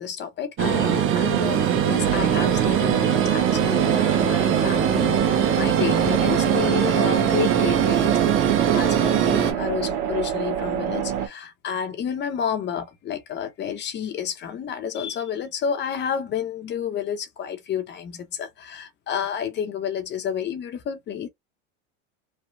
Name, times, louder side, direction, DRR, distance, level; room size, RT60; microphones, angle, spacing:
voice 1, 0.0-8.2 8.7-21.3, left 8 dB, 25° left, 0.7 m, -30 dB
sound 1, 0.6-9.5, right 9 dB, 30° right, 0.7 m, -21 dB
sound 2, 2.0-11.3, right 9 dB, 60° right, 1.0 m, -28 dB
3.2 x 2.0 x 2.6 m
supercardioid pair, 125°, 40 cm